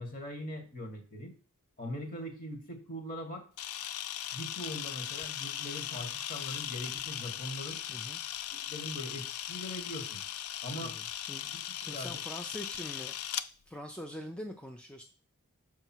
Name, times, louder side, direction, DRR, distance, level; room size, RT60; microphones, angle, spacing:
voice 1, 0.0-1.3 1.8-3.4 4.3-7.8 8.7-10.2 10.6-11.0 11.8-12.2, equal, 40° left, 4 dB, 1.7 m, -41 dB
Camera, 3.6-13.5, left 11 dB, 75° left, 0.4 m, -38 dB
voice 2, 7.9-8.2 10.8-11.5 11.8-13.2 13.7-15.0, equal, 5° left, 4 dB, 0.4 m, -43 dB
6.8 x 4.8 x 4.5 m, 0.38 s
head